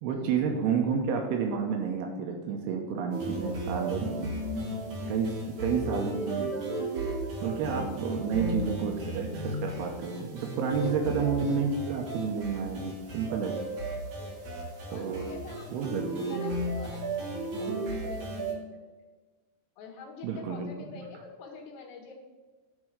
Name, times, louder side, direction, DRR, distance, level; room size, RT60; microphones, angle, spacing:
voice 1, 0.0-4.3 5.1-5.3 5.6-6.6 7.4-13.5 14.9-15.4 15.7-16.4 20.2-20.7 21.0-21.1, right 6 dB, 80° right, 2 dB, 2.9 m, -30 dB
sound 1, 3.1-18.5, right 1 dB, 50° right, 3.2 m, -35 dB
voice 2, 14.2-14.5 14.9-18.8 19.8-22.1, left 4 dB, 85° left, 0 dB, 3.9 m, -46 dB
9.5 x 4.8 x 6.7 m, 1.3 s
omnidirectional pair, 4.7 m